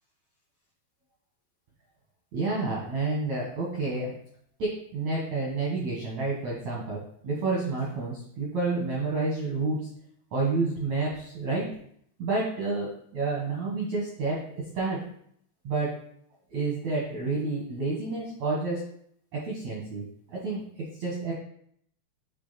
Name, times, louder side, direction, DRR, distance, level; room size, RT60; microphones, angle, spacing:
voice 1, 2.3-4.1 4.6-9.9 10.3-11.7 12.2-15.0 15.6-15.9 16.5-18.8 19.3-21.3, right 3 dB, 85° right, -5 dB, 1.5 m, -29 dB
9.9 x 3.3 x 4.1 m, 0.67 s
omnidirectional pair, 5.4 m